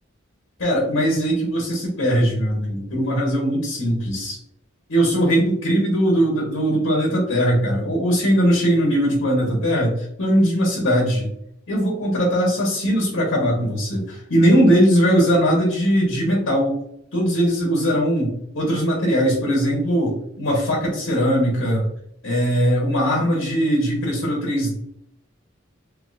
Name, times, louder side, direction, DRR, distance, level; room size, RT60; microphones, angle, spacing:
voice 1, 0.6-4.4 4.9-11.3 11.7-16.8 17.1-21.8 22.2-24.8, equal, 85° left, -2 dB, 1.1 m, -20 dB
3.6 x 2.9 x 2.6 m, 0.73 s
head